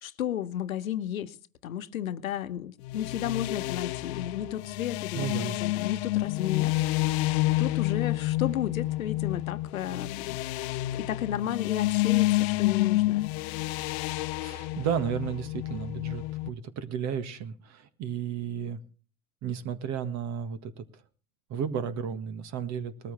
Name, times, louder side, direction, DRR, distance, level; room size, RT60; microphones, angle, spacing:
voice 1, 0.0-1.4 1.6-6.8 7.6-10.4 10.9-13.3, left 11 dB, 80° left, 1.1 m, -33 dB
sound 1, 2.8-16.5, left 17 dB, 55° left, 0.7 m, -29 dB
voice 2, 5.1-5.6 14.3-18.8 19.4-20.8 21.5-23.1, right 8 dB, 40° right, 1.8 m, -33 dB
20.5 x 13.5 x 3.4 m
hypercardioid pair, 95°, 41 cm